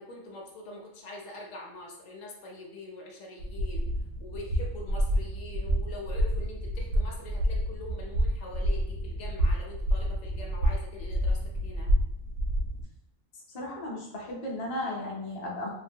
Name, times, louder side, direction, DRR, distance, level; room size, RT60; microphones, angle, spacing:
voice 1, 0.0-3.9 4.2-11.9, left 2 dB, 70° left, 0 dB, 0.9 m, -44 dB
sound 1, 3.4-12.8, equal, 80° right, 1.1 m, -29 dB
voice 2, 13.5-15.7, left 1 dB, 45° left, -3 dB, 0.5 m, -35 dB
2.8 x 2.5 x 2.7 m, 0.79 s
omnidirectional pair, 1.5 m